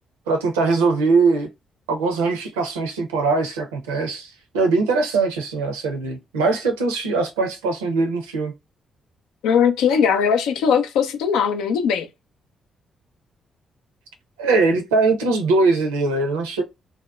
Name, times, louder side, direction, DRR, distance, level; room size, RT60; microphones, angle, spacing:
voice 1, 0.3-1.5 1.9-8.5 14.4-16.6, right 3 dB, 85° right, 0.6 m, -21 dB
voice 2, 9.4-12.1, left 7 dB, 75° left, 0.4 m, -19 dB
2.7 x 2.1 x 2.3 m
hypercardioid pair, 40°, 0 cm